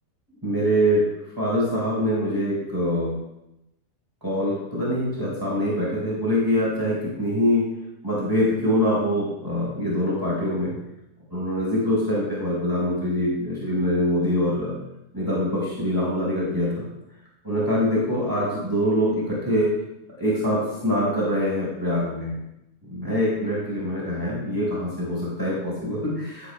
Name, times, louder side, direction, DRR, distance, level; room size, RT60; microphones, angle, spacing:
voice 1, 0.4-1.1 1.4-3.1 4.2-7.7 8.0-10.7 11.3-14.7 15.1-16.7 17.4-19.7 20.1-22.3 22.9-26.5, equal, 15° right, -6 dB, 4.5 m, -24 dB
15.0 x 10.5 x 2.2 m, 0.86 s
omnidirectional pair, 1.7 m